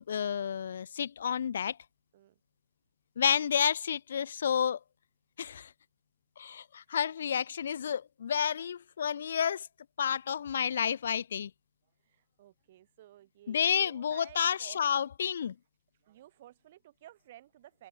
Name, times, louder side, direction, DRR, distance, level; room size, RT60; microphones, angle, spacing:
voice 1, 0.0-1.8 3.2-4.8 5.4-5.7 6.4-9.7 10.0-11.5 13.5-15.5, left 8 dB, 60° left, 0.6 m, -30 dB
voice 2, 12.0-14.8 16.0-17.9, right 13 dB, 40° right, 4.2 m, -55 dB
hypercardioid pair, 140°, 0 cm